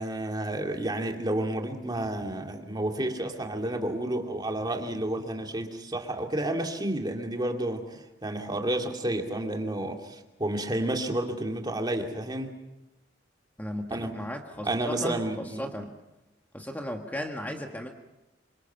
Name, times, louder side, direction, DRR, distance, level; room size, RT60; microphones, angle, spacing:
voice 1, 0.0-12.5 13.9-14.1 14.6-15.7, right 1 dB, 20° right, 3 dB, 2.5 m, -31 dB
voice 2, 13.6-15.9 16.5-17.9, equal, 10° left, 3 dB, 1.6 m, -36 dB
27.0 x 25.0 x 5.8 m, 0.96 s
head